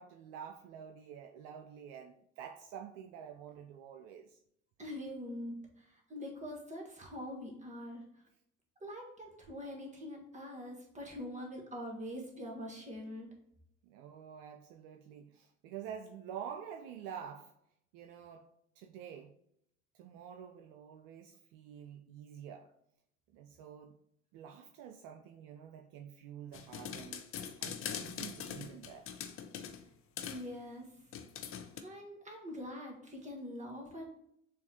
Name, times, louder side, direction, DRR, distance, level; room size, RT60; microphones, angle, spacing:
voice 1, 0.0-4.4 13.8-17.5 17.9-18.5 18.8-19.3 19.9-22.7 23.3-24.0 24.3-27.2 27.6-29.1, right 8 dB, 65° right, 4 dB, 0.5 m, -48 dB
voice 2, 4.8-8.0 8.8-13.3 30.2-30.9 31.8-34.0, left 1 dB, 20° right, 0 dB, 1.4 m, -44 dB
sound 1, 26.5-29.8 30.2-30.5 31.1-31.8, left 8 dB, 35° left, 0.5 m, -42 dB
6.9 x 2.5 x 2.8 m, 0.76 s
hypercardioid pair, 60°, 38 cm